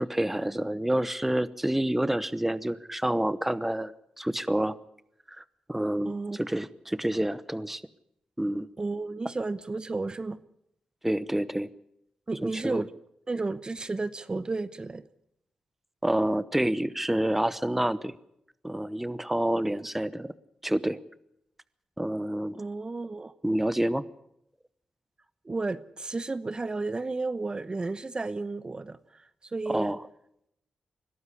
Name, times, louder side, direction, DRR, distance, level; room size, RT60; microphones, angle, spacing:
voice 1, 0.0-4.8 5.4-7.8 8.4-8.7 11.0-11.7 12.4-12.8 16.0-18.2 18.6-20.3 20.6-21.0 22.0-22.6 23.4-24.0 29.7-30.0, right 1 dB, 10° right, 17 dB, 0.9 m, -28 dB
voice 2, 6.0-6.4 8.8-10.4 12.3-12.9 13.3-15.0 22.6-23.3 25.4-29.2 29.5-29.9, right 3 dB, 35° right, 15 dB, 0.8 m, -32 dB
21.5 x 12.5 x 10.0 m, 0.79 s
cardioid pair, 55°, 3 cm